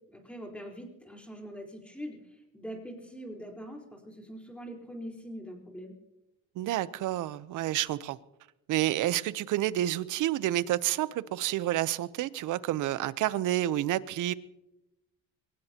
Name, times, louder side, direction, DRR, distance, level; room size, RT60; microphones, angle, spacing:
voice 1, 0.1-5.9, equal, 5° left, 4.2 m, -43 dB
voice 2, 6.6-8.2 8.7-14.3, right 14 dB, 65° right, 0.8 m, -29 dB
23.5 x 19.0 x 2.9 m
cardioid pair, 140°, 33 cm